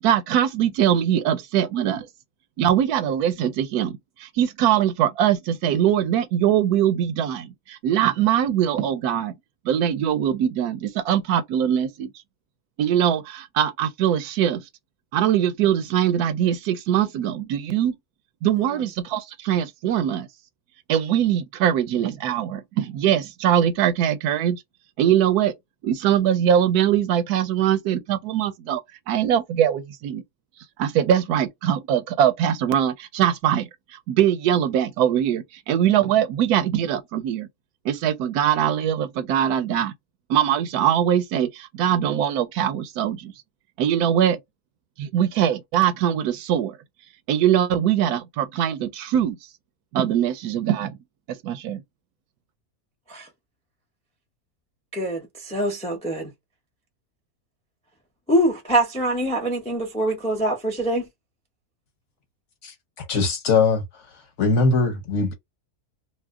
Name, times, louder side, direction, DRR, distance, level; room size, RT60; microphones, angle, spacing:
voice 1, 0.0-2.0 2.6-9.4 9.6-12.1 12.8-14.6 15.1-18.0 18.4-20.3 20.9-24.6 25.0-25.5 25.8-28.8 29.1-30.2 30.8-37.5 37.8-39.9 40.3-43.3 43.8-44.4 45.0-46.8 47.3-49.4 49.9-51.0 51.3-51.8, right 10 dB, 85° right, 1.1 m, -22 dB
voice 2, 54.9-56.3 58.3-61.1, right 1 dB, 10° left, 0.3 m, -24 dB
voice 3, 62.6-63.8 64.4-65.3, left 4 dB, 60° left, 1.0 m, -21 dB
2.6 x 2.0 x 3.5 m
omnidirectional pair, 1.6 m